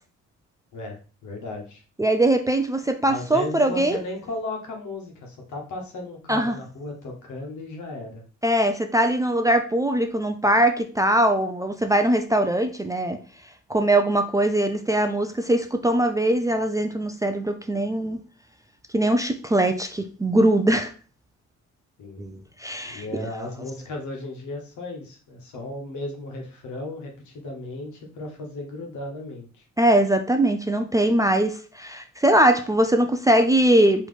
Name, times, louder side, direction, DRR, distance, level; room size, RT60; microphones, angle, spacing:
voice 1, 0.7-1.8 3.1-8.2 22.0-22.3 22.8-29.6, left 2 dB, 75° left, 1 dB, 1.3 m, -35 dB
voice 2, 2.0-4.0 6.3-6.6 8.4-13.2 13.7-18.2 18.9-20.9 22.2-23.3 29.8-34.1, right 1 dB, 10° right, 6 dB, 0.4 m, -21 dB
3.8 x 3.2 x 3.2 m, 0.38 s
cardioid pair, 90°, 30 cm